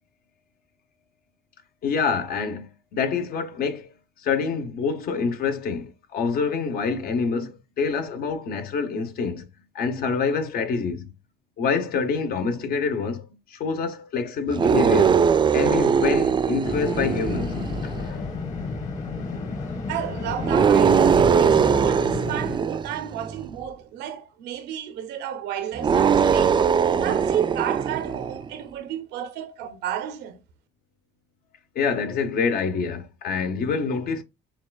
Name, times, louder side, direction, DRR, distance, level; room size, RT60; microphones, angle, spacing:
voice 1, 1.8-3.9 4.2-9.5 9.7-11.1 11.6-13.2 13.5-15.2 15.5-17.5 17.8-18.3 31.7-34.2, left 5 dB, 65° left, 1.0 m, -26 dB
sound 1, 14.5-18.1 20.4-23.5 25.7-28.5, right 7 dB, 30° right, 0.3 m, -21 dB
sound 2, 16.6-22.6, left 3 dB, 45° left, 1.6 m, -31 dB
voice 2, 19.9-26.6 27.0-30.4, right 10 dB, 85° right, 0.8 m, -32 dB
7.1 x 2.4 x 2.3 m
cardioid pair, 110°, 17 cm